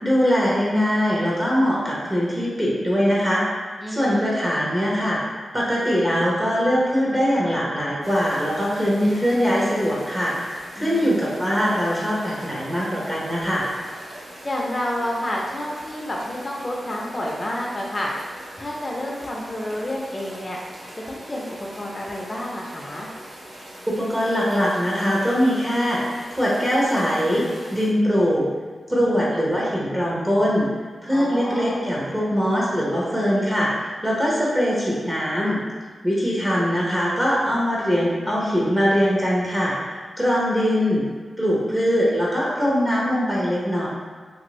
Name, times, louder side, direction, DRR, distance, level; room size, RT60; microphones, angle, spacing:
voice 1, 0.0-3.4 3.9-5.2 5.5-13.7 24.0-27.4 27.7-28.5 28.9-30.7 31.0-35.6 36.0-41.0 41.4-43.9, equal, 20° right, -5 dB, 0.9 m, -22 dB
voice 2, 3.8-4.6 10.8-11.2 14.4-18.1 18.6-20.6 21.0-21.5 21.7-23.1 31.1-31.8, left 1 dB, 35° left, -2 dB, 0.5 m, -29 dB
sound 1, 8.0-27.9, right 1 dB, 60° right, 0.8 m, -41 dB
2.9 x 2.5 x 3.1 m, 1.5 s
cardioid pair, 55°, 0 cm